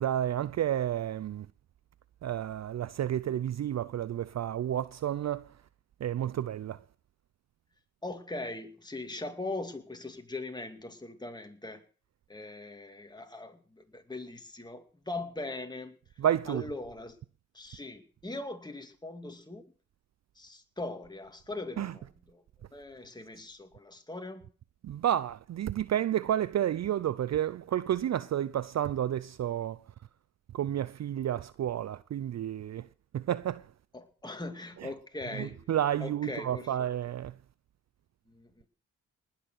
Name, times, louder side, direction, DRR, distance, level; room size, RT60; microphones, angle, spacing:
voice 1, 0.0-1.5 2.2-5.4 6.0-6.8 16.2-16.6 21.8-21.9 24.8-29.8 30.5-32.8 33.1-33.6 35.4-37.3, right 11 dB, 50° right, 0.5 m, -30 dB
voice 2, 8.0-11.8 12.3-16.0 16.5-17.2 17.5-19.6 20.4-22.4 22.7-24.5 33.9-35.6 36.0-36.9 38.3-38.7, left 2 dB, 10° left, 2.3 m, -40 dB
19.5 x 7.0 x 6.2 m
supercardioid pair, 50°, 35 cm